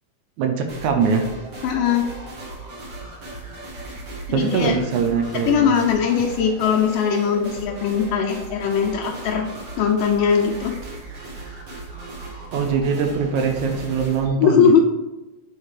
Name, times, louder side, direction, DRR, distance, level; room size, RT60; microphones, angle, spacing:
voice 1, 0.4-1.2 4.3-5.7 12.5-14.7, right 5 dB, 70° right, 4 dB, 2.0 m, -22 dB
sound 1, 0.7-14.2, right 2 dB, 50° right, 1.2 m, -37 dB
voice 2, 1.6-2.1 4.3-4.8 5.5-9.5 9.8-10.7 14.4-14.8, left 7 dB, 80° left, -1 dB, 2.3 m, -20 dB
7.3 x 4.2 x 4.8 m, 1.1 s
omnidirectional pair, 3.8 m